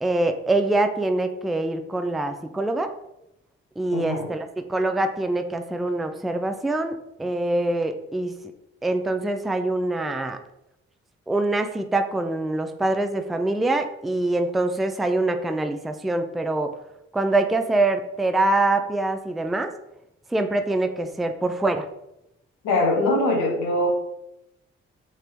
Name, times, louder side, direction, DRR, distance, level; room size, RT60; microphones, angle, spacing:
voice 1, 0.0-2.9 3.8-8.3 8.8-10.4 11.3-16.8 17.1-19.7 20.3-21.9, right 2 dB, ahead, 7 dB, 0.3 m, -24 dB
voice 2, 3.9-4.3 22.6-23.9, left 2 dB, 80° left, 1 dB, 0.9 m, -22 dB
3.2 x 2.9 x 3.2 m, 0.85 s
hypercardioid pair, 40°, 31 cm